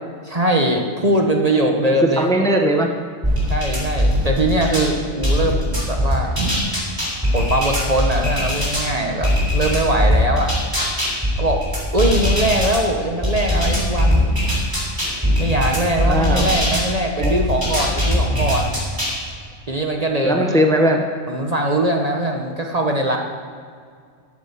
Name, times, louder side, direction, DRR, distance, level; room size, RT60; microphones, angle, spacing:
voice 1, 0.2-2.3 3.5-6.3 7.3-10.5 11.4-11.6 11.9-14.4 15.4-18.8 19.7-20.7 21.3-23.2, right 1 dB, 35° right, 2 dB, 1.2 m, -21 dB
voice 2, 1.9-3.0 16.1-16.5 17.2-17.3 20.2-21.1, right 1 dB, 5° left, 2 dB, 1.0 m, -19 dB
sound 1, 3.2-4.9 5.2-8.9 9.2-12.8 13.2-16.9 17.2-19.2, equal, 15° right, 3.4 m, -20 dB
14.0 x 8.5 x 6.7 m, 2.1 s
omnidirectional pair, 1.2 m